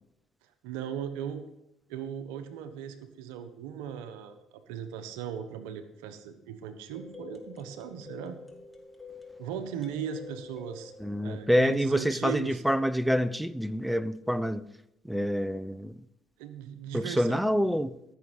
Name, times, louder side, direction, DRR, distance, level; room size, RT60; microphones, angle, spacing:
voice 1, 0.6-1.4 1.9-4.4 4.7-8.4 9.4-10.9 11.2-12.6 16.4-17.4, right 8 dB, 80° right, 1.0 m, -38 dB
sound 1, 6.9-12.0, left 4 dB, 20° left, 2.0 m, -48 dB
voice 2, 11.0-14.7 15.0-15.9 16.9-17.9, equal, 5° right, 0.6 m, -27 dB
14.0 x 6.5 x 5.1 m
hypercardioid pair, 65°, 0 cm